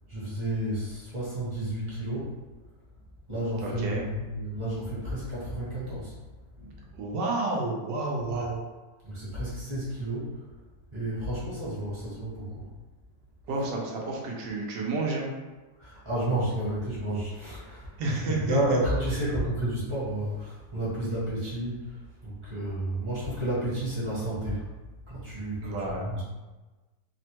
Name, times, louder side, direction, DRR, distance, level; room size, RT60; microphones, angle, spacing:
voice 1, 0.1-2.3 3.3-6.2 6.6-6.7 8.3-8.4 9.0-10.4 10.9-12.7 15.8-24.7 25.1-26.2, right 1 dB, 20° right, -10 dB, 0.9 m, -31 dB
voice 2, 3.6-4.0 6.9-8.6 13.5-15.3 18.0-18.8 25.6-26.1, right 2 dB, 85° right, -2 dB, 1.2 m, -30 dB
3.5 x 2.1 x 2.8 m, 1.2 s
omnidirectional pair, 1.8 m